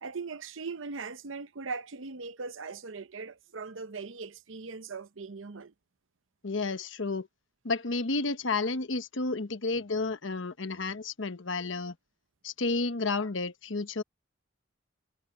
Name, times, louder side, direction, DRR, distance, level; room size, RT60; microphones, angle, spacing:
voice 1, 0.0-5.7, right 4 dB, 85° right, 0.8 m, -40 dB
voice 2, 6.4-7.3 7.6-11.9 12.4-14.0, left 3 dB, 80° left, 1.1 m, -31 dB
head